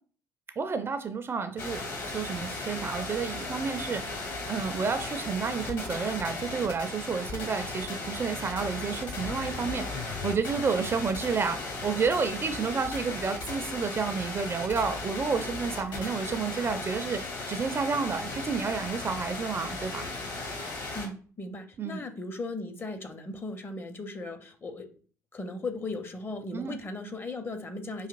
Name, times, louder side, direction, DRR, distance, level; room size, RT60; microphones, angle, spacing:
voice 1, 0.6-4.2 4.5-17.2 17.5-20.1 20.4-20.5 21.8-22.0 26.5-26.8, right 5 dB, 30° right, 0.4 m, -30 dB
sound 1, 1.6-21.1, left 3 dB, 50° left, 1.2 m, -36 dB
voice 2, 20.9-24.9 25.3-28.1, left 2 dB, 25° left, 0.6 m, -37 dB
4.9 x 2.8 x 2.5 m
figure-of-eight pair, 50°, 9 cm